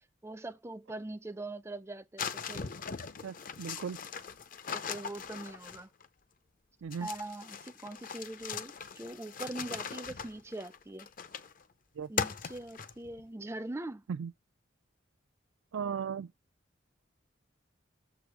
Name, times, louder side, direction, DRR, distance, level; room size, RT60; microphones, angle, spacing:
voice 1, 0.2-2.7 4.7-5.9 7.0-11.1 12.1-14.0, right 2 dB, 15° right, 0.4 m, -42 dB
sound 1, 2.2-6.1 6.9-11.6 12.2-13.2, left 6 dB, 45° left, 0.6 m, -40 dB
voice 2, 3.2-4.0 6.8-7.1 12.0-12.1 14.1-14.3 15.7-16.3, right 6 dB, 90° right, 0.4 m, -36 dB
6.9 x 4.8 x 4.8 m
head